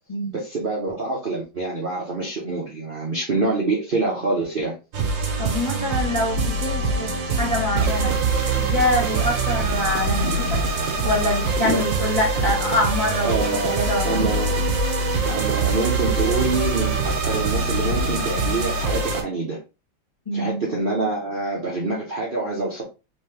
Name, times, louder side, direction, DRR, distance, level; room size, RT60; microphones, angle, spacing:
voice 1, 0.3-4.7 10.2-10.5 11.6-11.8 13.2-13.7 14.0-14.5 15.3-19.6 20.3-22.8, right 3 dB, 35° right, -4 dB, 0.9 m, -26 dB
sound 1, 4.9-19.2, right 3 dB, 75° right, 1.7 m, -23 dB
voice 2, 5.4-7.1 7.4-8.1 8.6-10.5 11.0-14.3 20.2-20.6, left 1 dB, 20° left, -5 dB, 1.3 m, -25 dB
4.3 x 2.9 x 3.4 m, 0.29 s
omnidirectional pair, 2.1 m